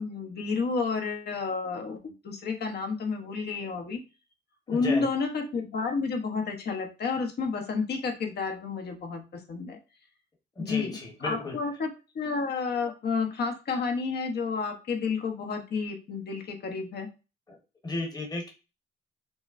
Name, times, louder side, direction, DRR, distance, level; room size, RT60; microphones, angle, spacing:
voice 1, 0.0-4.0 4.7-9.8 10.6-11.9 12.1-17.1, left 4 dB, 55° left, 3 dB, 1.0 m, -31 dB
voice 2, 4.7-5.1 10.6-11.6 17.5-17.6 17.8-18.5, left 3 dB, 20° left, 0 dB, 1.2 m, -34 dB
5.9 x 2.1 x 2.5 m, 0.30 s
cardioid pair, 90°, 20 cm